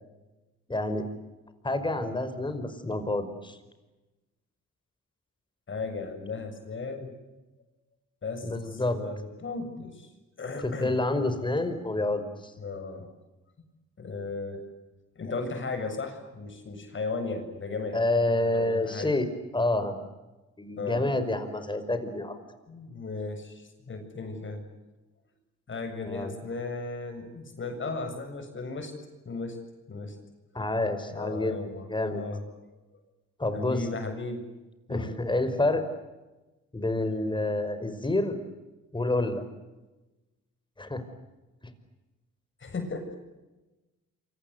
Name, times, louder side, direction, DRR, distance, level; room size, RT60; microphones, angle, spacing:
voice 1, 0.7-1.1 1.6-3.6 8.4-9.0 10.6-12.5 17.9-19.3 19.5-19.9 20.6-22.4 26.0-26.3 30.5-31.6 31.9-32.2 33.4-33.8 34.9-35.8 36.7-38.4 38.9-39.4 40.8-41.0, left 2 dB, 15° left, 10 dB, 5.4 m, -28 dB
voice 2, 5.7-7.1 8.2-10.1 10.4-11.0 12.6-13.1 14.0-14.6 15.2-18.0 18.5-19.1 20.8-21.1 22.7-24.6 25.7-28.9 29.3-30.2 31.1-32.4 33.5-34.4 34.9-35.1 42.6-43.2, left 3 dB, 40° left, 6 dB, 7.4 m, -36 dB
28.5 x 25.5 x 8.2 m, 1.1 s
cardioid pair, 90°, 30 cm